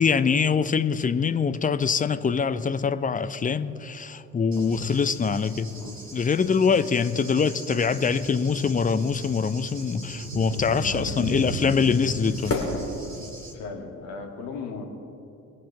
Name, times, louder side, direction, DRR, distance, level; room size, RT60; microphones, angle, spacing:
voice 1, 0.0-5.7 6.1-12.6, left 6 dB, 20° left, 0.7 m, -24 dB
Cricket / Thunder, 4.5-13.5, right 1 dB, 90° right, 1.1 m, -37 dB
sound 1, 7.7-13.7, left 2 dB, 40° left, 3.3 m, -37 dB
voice 2, 10.8-12.0 13.5-14.8, left 5 dB, 65° left, 2.0 m, -38 dB
22.0 x 9.3 x 3.4 m
figure-of-eight pair, 45°, 37 cm